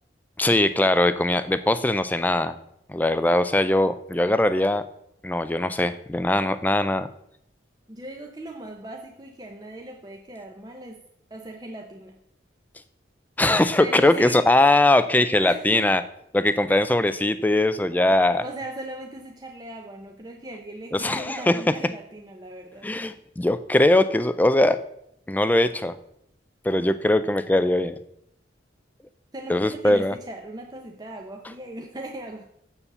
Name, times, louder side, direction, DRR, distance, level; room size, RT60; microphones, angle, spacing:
voice 1, 0.4-2.6 2.9-4.8 5.2-7.1 13.4-16.0 16.3-18.4 20.9-21.6 22.8-24.8 25.3-26.0 26.6-27.9 29.5-30.1, left 1 dB, 10° left, 12 dB, 0.3 m, -21 dB
voice 2, 7.9-11.0 11.3-12.1 13.8-14.4 15.4-15.9 18.0-22.9 29.3-32.4, right 1 dB, 20° right, 2 dB, 0.7 m, -38 dB
7.0 x 7.0 x 6.8 m, 0.76 s
head